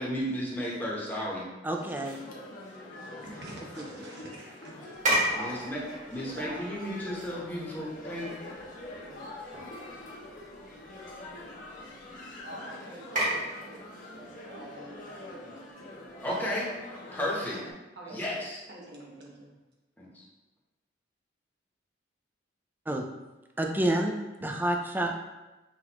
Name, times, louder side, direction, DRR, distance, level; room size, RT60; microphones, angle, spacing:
voice 1, 0.0-1.5 5.4-5.8 6.1-8.3 16.2-16.7 17.1-17.6 18.1-18.6 20.0-20.2, equal, 10° left, -5 dB, 0.9 m, -33 dB
voice 2, 1.6-2.2 3.8-3.9 22.9-23.1 23.6-24.1 24.4-25.2, right 1 dB, 10° right, 2 dB, 0.3 m, -28 dB
sound 1, 1.8-17.7, left 1 dB, 45° left, 0.7 m, -45 dB
voice 3, 2.3-5.1 5.4-5.7 6.3-6.7 12.4-16.2 16.8-16.9 18.0-18.4 18.7-19.5, right 2 dB, 60° right, -4 dB, 1.1 m, -47 dB
sound 2, 4.9-16.9, right 1 dB, 45° right, 1.3 m, -37 dB
5.9 x 2.4 x 2.9 m, 1.1 s
head